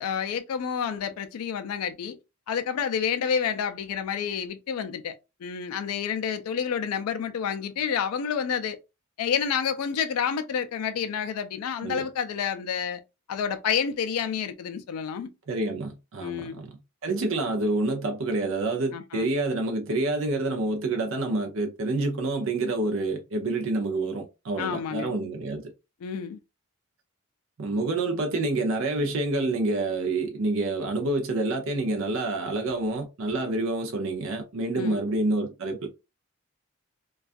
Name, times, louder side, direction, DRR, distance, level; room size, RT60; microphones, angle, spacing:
voice 1, 0.0-2.2 2.5-8.8 9.2-13.0 13.3-15.3 16.2-16.6 18.9-19.3 24.6-25.1 26.0-26.4 34.8-35.0, left 7 dB, 80° left, 0.3 m, -29 dB
voice 2, 15.5-25.7 27.6-35.9, right 2 dB, 60° right, 0.5 m, -28 dB
2.3 x 2.3 x 2.4 m
head